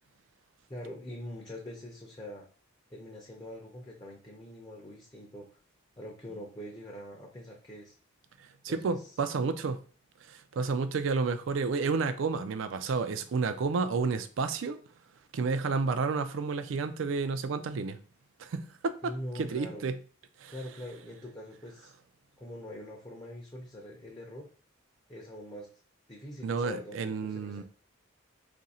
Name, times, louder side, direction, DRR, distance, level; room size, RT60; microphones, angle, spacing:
voice 1, 0.7-2.5 2.9-5.5 6.0-7.9 8.7-9.1 19.0-19.8 20.5-21.9 22.4-24.5 25.1-25.7 26.1-27.6, left 1 dB, 20° left, 0.6 m, -43 dB
voice 2, 8.6-9.8 10.3-14.8 15.3-18.0 18.4-20.0 20.4-20.5 26.4-27.6, right 4 dB, 70° right, 0.4 m, -31 dB
2.7 x 2.6 x 4.1 m
head